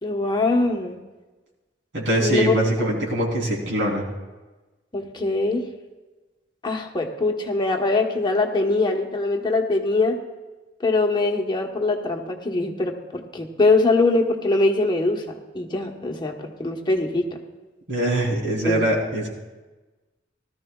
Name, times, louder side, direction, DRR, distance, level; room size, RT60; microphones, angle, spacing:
voice 1, 0.0-1.0 2.2-2.5 4.9-5.6 6.6-10.2 10.8-15.2 15.5-17.3 18.6-18.8, left 2 dB, 25° left, 2 dB, 1.1 m, -22 dB
voice 2, 1.9-4.1 17.9-19.3, right 1 dB, 90° right, -2 dB, 3.3 m, -23 dB
18.0 x 13.5 x 2.3 m, 1.2 s
head